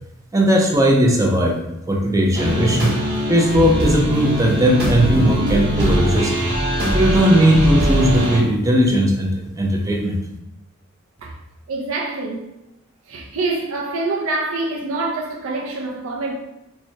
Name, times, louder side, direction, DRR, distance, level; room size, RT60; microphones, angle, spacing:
voice 1, 0.3-1.6 1.9-3.0 3.3-6.3 6.9-10.2, equal, 15° right, 0.4 m, -17 dB
sound 1, 2.3-8.4, equal, 50° right, 1.3 m, -21 dB
voice 2, 11.7-12.5 13.1-16.3, right 3 dB, 70° right, 0.5 m, -25 dB
4.4 x 2.2 x 2.7 m
head